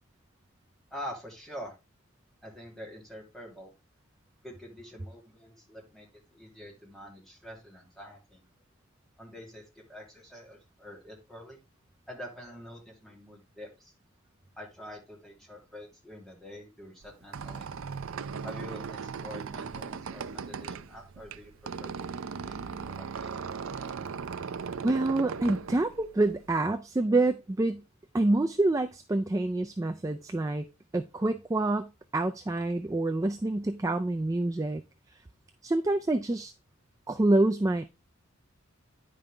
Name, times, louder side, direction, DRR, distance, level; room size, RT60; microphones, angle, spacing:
voice 1, 0.9-1.7 2.4-3.7 4.4-6.1 6.3-8.4 9.2-11.6 12.1-13.9 14.6-17.7 18.4-21.5 21.8-23.9, equal, ahead, 2.5 m, -46 dB
Squeak, 17.0-26.6, right 5 dB, 75° right, 0.5 m, -38 dB
voice 2, 24.8-27.8 28.1-30.7 30.9-34.8 35.6-36.5 37.1-37.8, right 2 dB, 15° right, 0.3 m, -27 dB
9.7 x 5.4 x 3.3 m
head